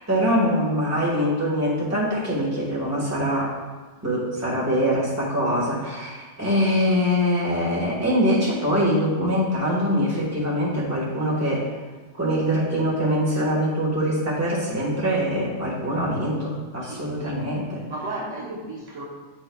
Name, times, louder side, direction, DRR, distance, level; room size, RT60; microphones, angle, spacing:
voice 1, 0.1-3.5 4.0-11.6 12.2-17.8, equal, 15° right, -6 dB, 1.5 m, -23 dB
voice 2, 16.8-17.4 17.8-19.0, right 2 dB, 80° right, -4 dB, 1.5 m, -34 dB
9.7 x 4.5 x 2.3 m, 1.3 s
omnidirectional pair, 1.3 m